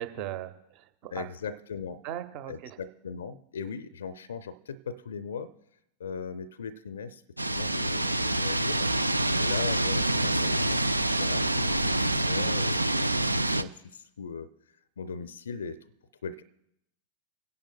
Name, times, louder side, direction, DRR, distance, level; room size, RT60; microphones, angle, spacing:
voice 1, 0.0-1.3 2.0-2.8, right 12 dB, 40° right, 11 dB, 0.8 m, -38 dB
voice 2, 1.1-2.0 2.5-5.5 6.0-7.2 7.5-14.5 15.0-15.8 16.2-16.4, left 6 dB, 65° left, 15 dB, 0.4 m, -39 dB
sound 1, 7.4-13.6, right 1 dB, 85° right, 0.3 m, -26 dB
28.5 x 10.5 x 2.2 m, 0.78 s
figure-of-eight pair, 90°, 0 cm